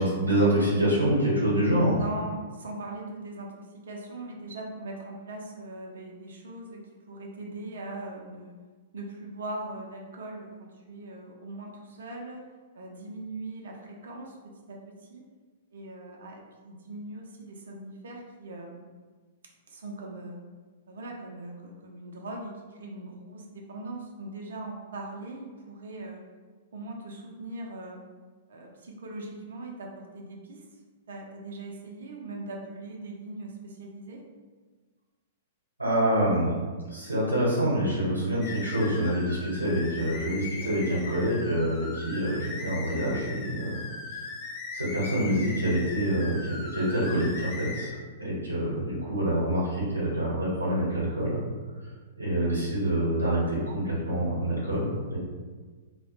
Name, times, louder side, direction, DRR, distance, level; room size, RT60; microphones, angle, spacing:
voice 1, 0.0-1.9 35.8-36.5 36.9-43.8 44.1-44.2 44.7-51.4 52.2-55.2, right 1 dB, 85° right, -6 dB, 0.8 m, -26 dB
voice 2, 1.8-8.5 8.9-12.5 12.7-15.3 15.7-18.9 19.7-20.4 20.9-26.2 26.7-28.0 28.5-30.7 31.1-34.2, right 2 dB, 65° right, 0 dB, 0.4 m, -40 dB
sound 1, 38.4-47.9, left 4 dB, 30° left, 0.4 m, -39 dB
2.1 x 2.1 x 2.8 m, 1.4 s
figure-of-eight pair, 105°, 0 cm